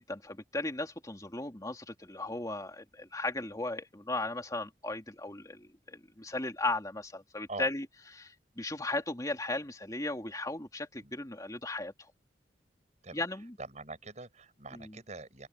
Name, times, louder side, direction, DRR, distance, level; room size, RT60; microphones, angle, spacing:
voice 1, 0.0-7.9 8.1-11.9 13.1-13.6 14.7-15.0, left 2 dB, 20° left, 2.9 m, -36 dB
voice 2, 13.6-15.5, right 2 dB, 40° right, 6.1 m, -43 dB
head